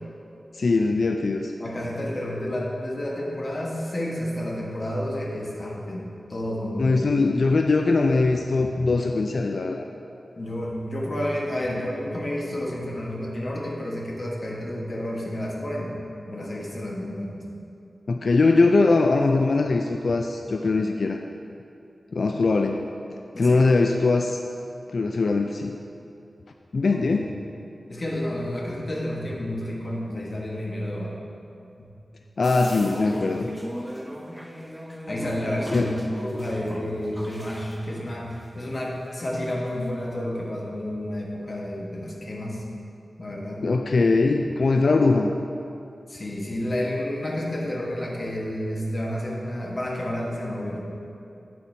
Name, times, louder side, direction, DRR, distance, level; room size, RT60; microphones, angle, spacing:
voice 1, 0.5-1.5 6.8-9.9 18.1-21.2 22.1-22.9 23.4-24.4 24.9-25.7 26.7-27.3 32.4-33.5 35.7-35.9 43.6-45.3, left 3 dB, 70° left, 4 dB, 0.3 m, -21 dB
voice 2, 1.6-6.0 6.3-7.0 10.4-15.9 16.3-17.4 23.3-23.6 26.9-27.2 27.9-31.2 31.8-31.9 33.0-33.5 35.1-42.6 43.2-43.7 46.1-50.8, left 1 dB, 45° left, -3 dB, 1.3 m, -30 dB
sound 1, 32.4-39.1 39.3-39.8, equal, ahead, 0.6 m, -37 dB
8.4 x 7.4 x 2.7 m, 2.6 s
wide cardioid pair, 65°, 0 cm